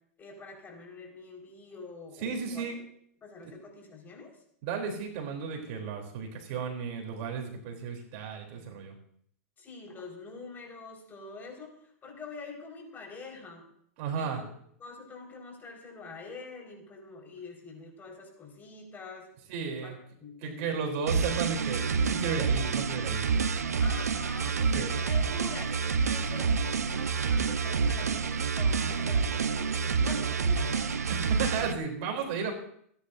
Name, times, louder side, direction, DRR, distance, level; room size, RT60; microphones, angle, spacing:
voice 1, 0.2-2.6 3.2-4.3 9.6-13.7 14.1-14.4 14.8-19.3 19.8-20.7 23.8-31.1 32.1-32.4, left 4 dB, 25° left, 0 dB, 4.8 m, -45 dB
voice 2, 2.2-2.8 3.4-3.5 4.6-8.9 14.0-14.4 19.5-20.0 20.4-23.3 24.5-24.9 31.1-32.5, right 6 dB, 50° right, 2 dB, 3.4 m, -34 dB
sound 1, 21.1-31.7, right 5 dB, 90° right, 1.0 m, -28 dB
29.0 x 10.5 x 2.7 m, 0.67 s
hypercardioid pair, 115°, 8 cm